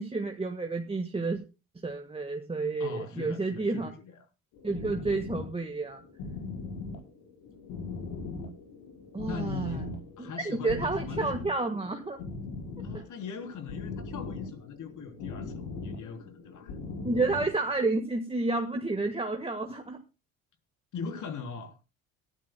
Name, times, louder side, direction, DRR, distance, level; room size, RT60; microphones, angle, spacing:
voice 1, 0.0-1.4 1.8-3.9 4.6-6.0 9.1-9.8 10.2-12.2 12.9-13.0 17.0-20.0, right 3 dB, 15° right, 1.5 m, -30 dB
voice 2, 2.8-4.2 9.3-9.9 10.2-11.4 12.8-16.8 20.9-21.8, left 6 dB, 60° left, 3.5 m, -41 dB
sound 1, 4.5-17.7, left 3 dB, 80° left, 5.2 m, -40 dB
22.5 x 13.5 x 2.2 m
supercardioid pair, 75°, 35 cm